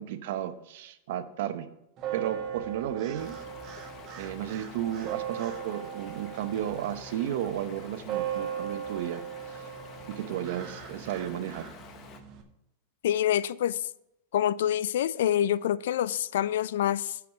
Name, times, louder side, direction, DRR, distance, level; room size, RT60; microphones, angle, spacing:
voice 1, 0.0-1.7 2.1-3.4 4.2-9.7 10.0-11.7, right 11 dB, 65° right, 0.8 m, -33 dB
sound 1, 2.0-12.4, right 9 dB, 35° right, 1.3 m, -38 dB
Stream, 3.2-12.2, left 7 dB, 35° left, 0.8 m, -50 dB
voice 2, 13.0-13.9 14.3-17.2, left 11 dB, 80° left, 0.3 m, -26 dB
8.4 x 4.8 x 7.2 m
supercardioid pair, 145°, 0 cm